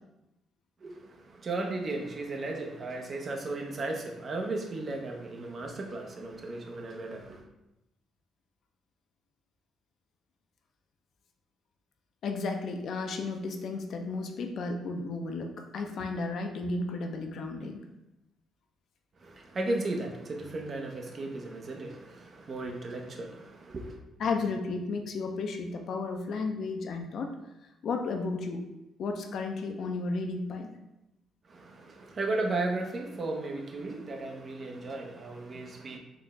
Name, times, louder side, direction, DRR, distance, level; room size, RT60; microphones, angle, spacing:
voice 1, 0.8-7.4 19.2-24.0 31.5-36.0, right 2 dB, 50° right, 2 dB, 0.6 m, -35 dB
voice 2, 12.2-17.8 24.2-27.3 27.8-28.6 29.0-30.7, left 3 dB, 65° left, 4 dB, 0.4 m, -33 dB
3.9 x 2.1 x 3.4 m, 0.92 s
supercardioid pair, 60°, 0 cm